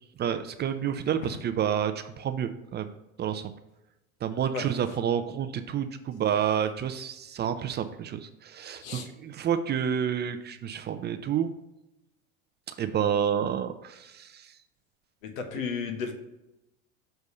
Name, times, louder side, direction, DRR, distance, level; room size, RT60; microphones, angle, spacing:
voice 1, 0.2-2.9 3.2-3.5 4.2-11.5 12.7-14.5, right 8 dB, 25° right, 9 dB, 0.4 m, -29 dB
voice 2, 15.2-16.1, left 5 dB, 80° left, 5 dB, 1.2 m, -33 dB
6.7 x 3.4 x 5.4 m, 0.92 s
hypercardioid pair, 90°, 40 cm